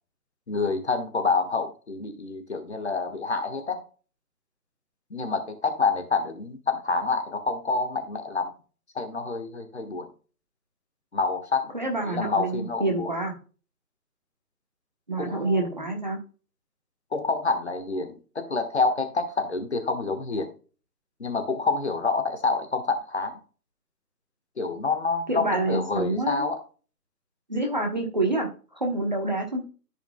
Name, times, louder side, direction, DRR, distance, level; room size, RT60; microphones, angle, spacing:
voice 1, 0.5-3.8 5.1-8.5 8.9-10.1 11.1-11.6 12.0-13.1 15.2-15.7 17.1-20.5 21.2-23.4 24.6-26.6, left 4 dB, 45° left, 6 dB, 1.4 m, -27 dB
voice 2, 11.7-13.4 15.1-16.2 25.3-26.5 27.5-29.6, right 2 dB, 30° right, 2 dB, 1.0 m, -27 dB
14.0 x 4.9 x 2.2 m, 0.37 s
figure-of-eight pair, 170°, 48 cm